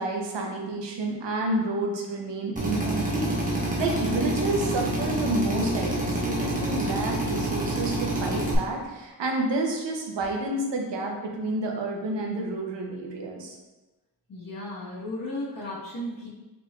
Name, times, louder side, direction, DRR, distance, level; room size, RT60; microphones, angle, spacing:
voice 1, 0.0-13.6, right 2 dB, 80° right, 1 dB, 0.8 m, -30 dB
Drill, 2.6-8.6, right 1 dB, 20° right, 1.0 m, -27 dB
voice 2, 14.3-16.3, left 1 dB, 50° left, -7 dB, 1.4 m, -35 dB
4.3 x 4.1 x 2.4 m, 1.1 s
wide cardioid pair, 130°, 42 cm